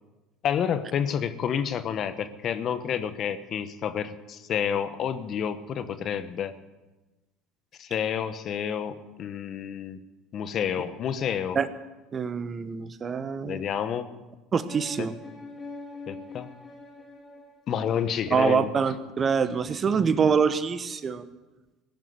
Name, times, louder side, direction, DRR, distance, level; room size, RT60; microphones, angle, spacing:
voice 1, 0.4-6.5 7.8-10.0 10.3-11.6 13.4-14.2 15.0-15.1 16.1-16.5 17.7-18.7, left 8 dB, 50° left, 12 dB, 1.0 m, -29 dB
voice 2, 12.1-13.6 14.5-15.1 18.3-21.3, right 6 dB, 35° right, 13 dB, 1.1 m, -25 dB
sound 1, 14.7-18.5, left 3 dB, 25° left, 4.1 m, -44 dB
17.0 x 7.3 x 9.6 m, 1.1 s
hypercardioid pair, 75°, 0 cm